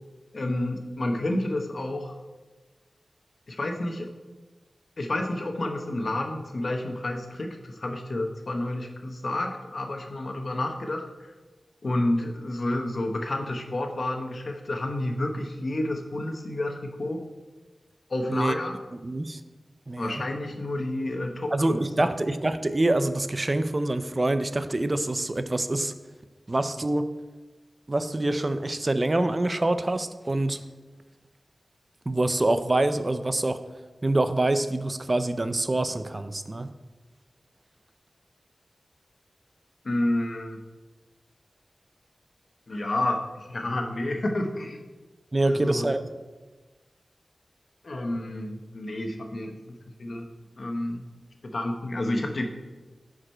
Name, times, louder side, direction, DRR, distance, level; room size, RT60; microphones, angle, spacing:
voice 1, 0.3-2.1 3.5-4.1 5.0-11.3 11.8-17.3 18.1-18.8 20.0-22.1 39.8-40.6 42.7-44.8 45.5-45.9 47.8-50.3 50.6-51.0 51.4-52.5, left 1 dB, 60° left, 4 dB, 1.0 m, -30 dB
voice 2, 19.0-19.4 19.9-20.2 21.5-25.9 26.5-27.1 27.9-30.6 32.1-33.6 34.0-36.7 45.3-46.1, right 2 dB, 35° right, 11 dB, 0.4 m, -25 dB
11.0 x 5.0 x 4.4 m, 1.2 s
wide cardioid pair, 85°, 0 cm